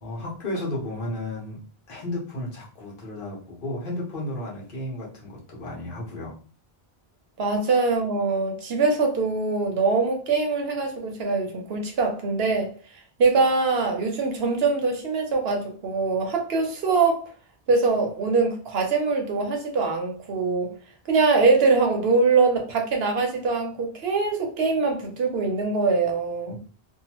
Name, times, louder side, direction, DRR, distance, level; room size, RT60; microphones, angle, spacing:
voice 1, 0.0-1.6 1.9-6.4, left 1 dB, 60° left, 1.1 m, -33 dB
voice 2, 7.4-17.2 17.7-20.7 21.1-26.6, right 4 dB, 75° right, 1.0 m, -23 dB
2.7 x 2.3 x 2.9 m
omnidirectional pair, 1.1 m